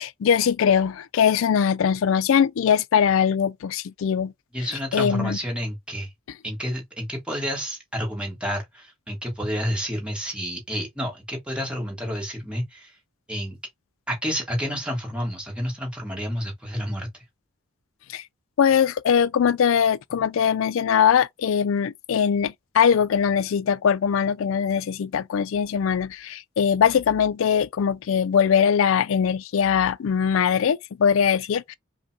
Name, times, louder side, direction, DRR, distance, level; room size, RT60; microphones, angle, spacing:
voice 1, 0.0-4.3 4.9-5.4 18.1-18.2 18.6-31.7, left 7 dB, 70° left, 0.3 m, -21 dB
voice 2, 4.5-6.1 6.4-12.9 13.3-13.6 14.1-17.1, equal, 5° right, 1.5 m, -30 dB
5.2 x 2.2 x 2.7 m
head